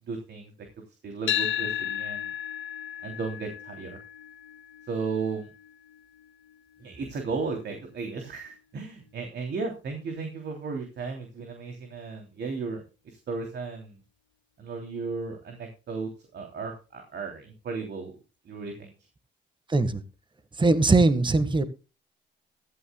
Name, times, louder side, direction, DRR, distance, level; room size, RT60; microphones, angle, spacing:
voice 1, 0.1-0.5 1.0-2.3 3.0-4.0 4.9-5.5 6.8-14.0 14.6-18.1 18.4-18.9, right 4 dB, 60° right, 3 dB, 3.2 m, -35 dB
sound 1, 1.3-9.5, left 10 dB, 75° left, 1.0 m, -36 dB
voice 2, 19.7-20.0 20.6-21.6, right 3 dB, 25° right, 12 dB, 1.6 m, -21 dB
15.0 x 13.0 x 2.3 m, 0.32 s
cardioid pair, 90°, 20 cm